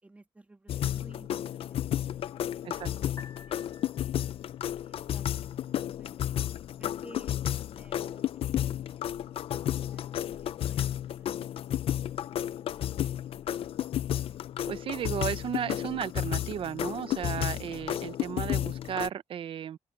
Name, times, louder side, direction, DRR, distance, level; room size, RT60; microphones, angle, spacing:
voice 1, 0.0-3.1 3.4-4.4 4.8-6.4 6.8-7.4 7.7-9.3 9.9-12.0 12.9-13.4, right 2 dB, 15° right, 2.4 m, -57 dB
sound 1, 0.7-19.1, left 11 dB, 60° left, 0.5 m, -32 dB
Piano, 3.0-16.0, left 5 dB, 35° left, 5.9 m, -60 dB
voice 2, 14.7-19.8, right 9 dB, 55° right, 0.7 m, -34 dB
open air
cardioid pair, 140°, 11 cm